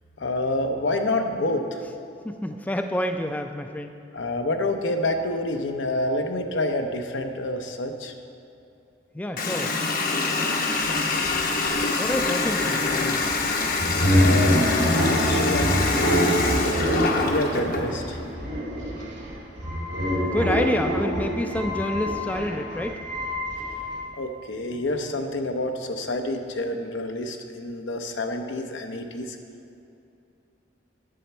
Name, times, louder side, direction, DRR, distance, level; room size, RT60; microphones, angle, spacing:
voice 1, 0.2-1.8 4.1-8.1 13.9-15.7 16.0-16.5 17.1-18.2 24.1-29.4, left 2 dB, 85° left, 5 dB, 0.7 m, -28 dB
voice 2, 2.2-4.0 9.1-9.7 12.0-13.2 20.3-23.0, left 1 dB, 10° left, 6 dB, 0.3 m, -28 dB
Water tap faucet, 9.4-17.9, left 3 dB, 50° left, 0.8 m, -25 dB
sound 1, 11.2-24.0, equal, 80° right, 2.3 m, -25 dB
10.0 x 6.9 x 4.3 m, 2.7 s
head